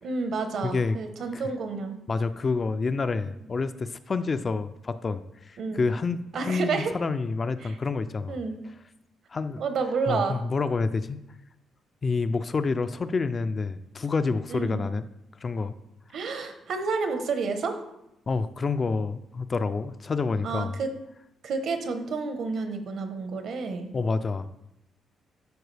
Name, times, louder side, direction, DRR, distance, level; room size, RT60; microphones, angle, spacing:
voice 1, 0.0-2.0 5.6-5.8 6.3-6.9 7.6-7.7 8.3-8.5 9.6-10.4 14.5-14.8 16.1-17.8 20.4-20.9 21.4-23.9, right 4 dB, 55° right, 7 dB, 0.9 m, -30 dB
voice 2, 0.6-1.0 1.3-1.4 2.1-8.4 9.3-9.6 10.1-11.2 12.0-15.1 15.4-15.7 18.3-20.7 23.9-24.5, left 4 dB, 25° left, 11 dB, 0.3 m, -28 dB
12.5 x 4.6 x 3.3 m, 0.84 s
cardioid pair, 160°, 0 cm